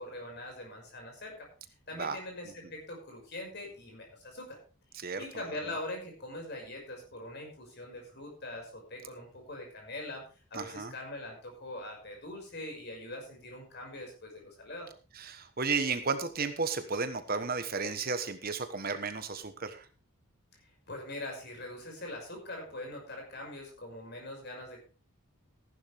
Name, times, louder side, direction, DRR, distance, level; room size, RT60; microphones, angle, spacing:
voice 1, 0.0-1.5 1.9-4.6 5.2-10.2 10.5-14.9 20.9-24.8, left 1 dB, 50° left, 1 dB, 5.9 m, -42 dB
voice 2, 10.5-10.9 15.2-19.8, right 4 dB, 45° right, 9 dB, 1.2 m, -33 dB
15.0 x 11.0 x 3.5 m, 0.35 s
head